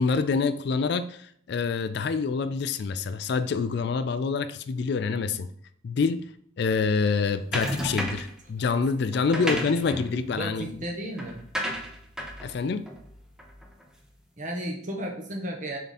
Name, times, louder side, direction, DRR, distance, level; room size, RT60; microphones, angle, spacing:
voice 1, 0.0-5.5 5.8-6.3 6.6-10.8 12.4-12.9, left 4 dB, 55° left, 0.3 m, -26 dB
sound 1, 7.5-8.4 9.1-13.8, equal, 5° right, 0.7 m, -34 dB
voice 2, 9.3-9.7 10.4-11.4 14.4-15.8, right 1 dB, 40° right, 1.2 m, -34 dB
6.8 x 3.8 x 4.2 m
head